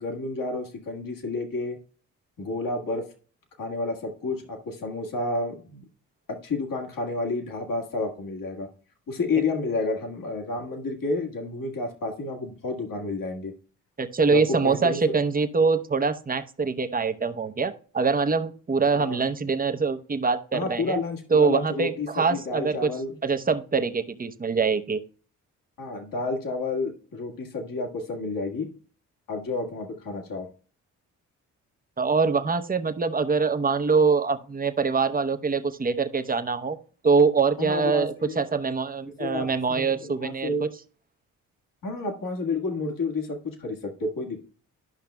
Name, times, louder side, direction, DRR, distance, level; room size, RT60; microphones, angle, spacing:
voice 1, 0.0-1.8 2.4-3.0 3.6-5.8 6.3-8.7 9.1-13.5 14.3-15.0 18.9-19.2 20.5-23.2 25.8-28.7 29.3-30.5 37.6-38.4 39.2-40.7 41.8-44.4, left 3 dB, 60° left, 2 dB, 1.8 m, -30 dB
voice 2, 14.0-21.0 21.3-22.9 23.2-25.0 32.0-36.8 37.0-40.7, right 4 dB, 25° right, 9 dB, 0.8 m, -24 dB
12.0 x 5.7 x 2.2 m, 0.41 s
supercardioid pair, 50°, 38 cm